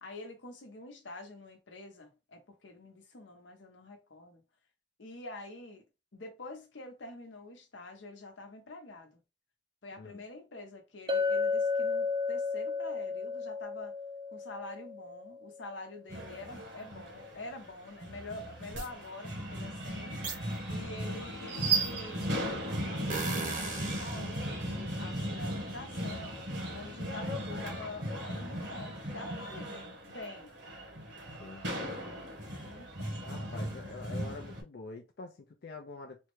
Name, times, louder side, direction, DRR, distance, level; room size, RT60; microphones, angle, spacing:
voice 1, 0.0-4.4 5.0-5.8 6.1-9.2 9.8-14.0 14.3-20.3 20.7-22.2 23.0-30.5 32.5-33.9, left 2 dB, 90° left, 0.9 m, -47 dB
Chink clink, 11.1-15.5, left 4 dB, 25° right, 0.3 m, -33 dB
sound 1, 16.1-34.6, equal, 70° right, 1.2 m, -38 dB
sound 2, 18.7-18.9 20.2-20.4 21.5-22.2 23.1-24.3, right 6 dB, 45° right, 0.8 m, -32 dB
voice 2, 33.3-36.2, left 3 dB, 60° left, 0.5 m, -45 dB
3.5 x 2.1 x 3.1 m
head